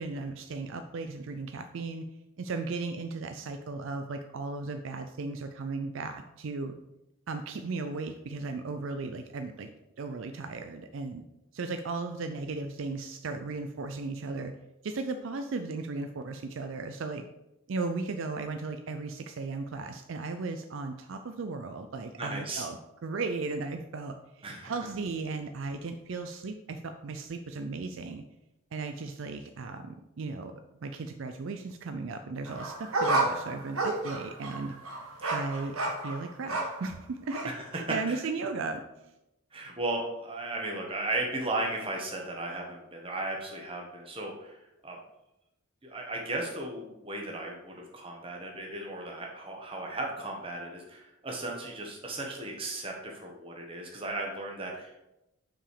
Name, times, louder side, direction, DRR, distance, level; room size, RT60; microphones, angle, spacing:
voice 1, 0.0-2.0 2.4-6.7 7.3-9.7 10.0-11.2 11.5-14.5 14.8-17.3 17.7-28.2 28.7-30.5 30.8-34.7 35.3-35.8 36.0-39.1, right 3 dB, 60° right, 7 dB, 0.4 m, -36 dB
voice 2, 22.2-22.7 24.4-24.7 35.2-35.3 37.4-37.6 38.1-38.2 39.5-44.6 44.8-45.0 45.8-55.1, right 2 dB, 25° right, 0 dB, 1.2 m, -36 dB
sound 1, 32.5-36.9 37.3-37.5, right 2 dB, 80° right, 1.3 m, -31 dB
6.0 x 4.8 x 4.9 m, 0.91 s
head